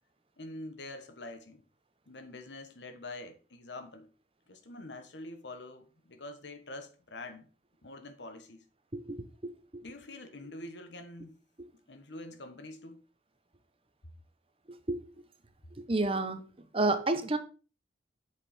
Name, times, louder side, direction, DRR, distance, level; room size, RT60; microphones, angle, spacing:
voice 1, 0.4-1.6 2.1-4.1 4.5-7.5 7.8-8.6 9.8-11.4 11.9-13.0, left 2 dB, 85° left, 1.3 m, -45 dB
voice 2, 9.4-9.8 14.7-15.0 15.8-16.4 16.7-17.4, right 2 dB, 30° right, 0.8 m, -30 dB
7.7 x 5.6 x 4.3 m
head